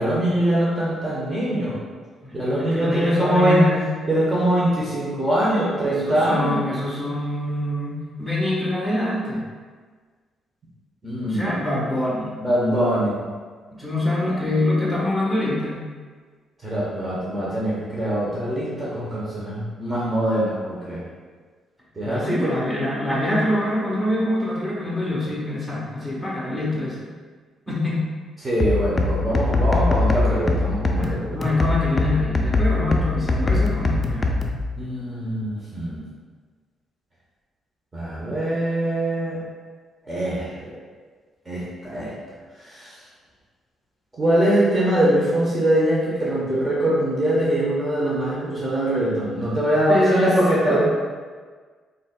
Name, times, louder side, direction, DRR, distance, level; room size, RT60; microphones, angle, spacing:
voice 1, 0.0-1.8 2.3-3.7 4.1-6.6 11.0-11.5 12.4-13.3 14.3-14.4 16.6-21.0 22.0-22.6 28.4-31.4 34.8-36.0 37.9-39.4 40.1-40.7 41.5-42.1 42.6-42.9 44.2-50.8, right 1 dB, 25° right, -7 dB, 0.9 m, -22 dB
voice 2, 2.2-3.9 5.8-9.4 11.2-12.3 13.8-15.9 22.0-27.1 27.7-28.1 31.0-34.4 49.7-50.4 50.7-50.8, left 1 dB, ahead, -6 dB, 1.3 m, -25 dB
sound 1, 28.6-34.6, left 2 dB, 30° left, 0.4 m, -22 dB
4.0 x 3.8 x 2.3 m, 1.5 s
cardioid pair, 90°, 0 cm